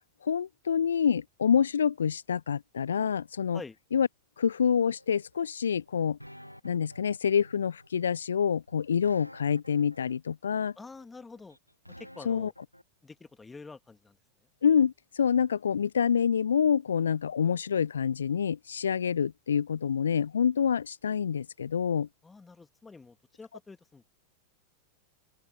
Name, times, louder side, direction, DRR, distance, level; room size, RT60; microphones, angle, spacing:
voice 1, 0.2-3.6 3.9-4.1 4.4-6.2 6.6-10.7 12.3-12.5 14.6-22.1, left 7 dB, 70° left, 0.4 m, -27 dB
sound 1, 4.6-12.8, equal, 90° left, 2.1 m, -51 dB
voice 2, 10.8-11.6 12.0-12.5 13.0-14.2 22.2-24.1, left 4 dB, 10° left, 2.2 m, -47 dB
open air
figure-of-eight pair, 90°, 0 cm